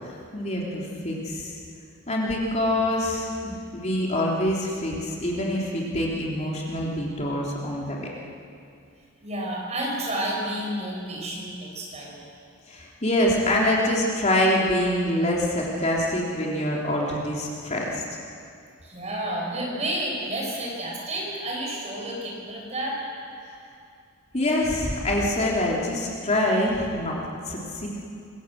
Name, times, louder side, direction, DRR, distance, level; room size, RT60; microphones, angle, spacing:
voice 1, 0.0-1.5 2.1-8.1 12.7-18.0 23.4-23.5 24.3-27.9, left 1 dB, 30° left, -3 dB, 3.5 m, -25 dB
voice 2, 9.2-12.2 18.8-23.0, right 1 dB, 30° right, -2 dB, 6.6 m, -30 dB
26.5 x 22.5 x 7.9 m, 2.4 s
head